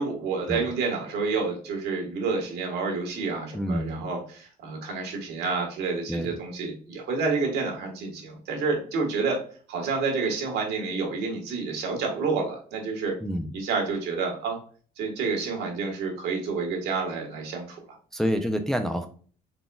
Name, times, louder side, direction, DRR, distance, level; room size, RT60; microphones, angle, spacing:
voice 1, 0.0-9.4 9.7-13.2 13.5-14.6 15.0-17.8, right 4 dB, 80° right, 1 dB, 1.4 m, -29 dB
voice 2, 3.5-4.1 6.1-6.3 13.2-13.5 18.1-19.1, equal, 5° left, 6 dB, 0.4 m, -27 dB
4.0 x 3.6 x 2.2 m, 0.42 s
cardioid pair, 110°, 17 cm